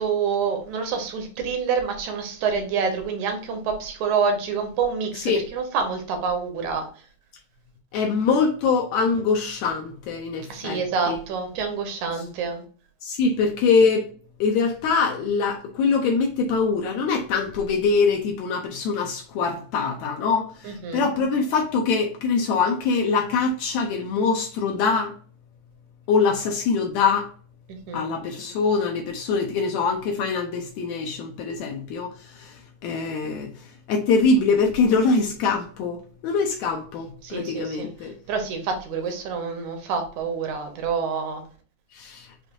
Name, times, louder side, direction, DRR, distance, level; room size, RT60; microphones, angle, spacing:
voice 1, 0.0-6.9 10.5-12.6 20.6-21.1 27.7-28.1 37.2-41.4, right 5 dB, 75° right, 2.2 m, -27 dB
voice 2, 7.9-10.8 11.1-11.2 13.0-14.1 14.4-25.2 26.1-27.3 27.9-38.2 41.9-42.3, left 4 dB, 75° left, 1.8 m, -23 dB
6.5 x 2.6 x 2.5 m
omnidirectional pair, 3.5 m